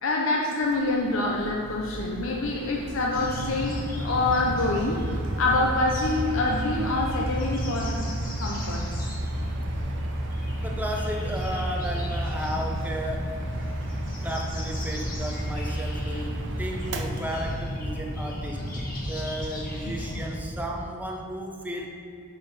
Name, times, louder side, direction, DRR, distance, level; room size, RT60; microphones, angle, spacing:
voice 1, 0.0-5.0 5.4-8.1 8.4-8.8, left 2 dB, 60° left, -1 dB, 0.6 m, -26 dB
Mechanical fan, 0.6-20.3, right 1 dB, 55° right, 0.6 m, -34 dB
sound 1, 3.1-20.4, equal, 40° left, 1.4 m, -33 dB
voice 2, 10.6-13.4 14.2-21.9, equal, 5° right, 0 dB, 0.7 m, -34 dB
8.9 x 4.2 x 5.4 m, 2.6 s
head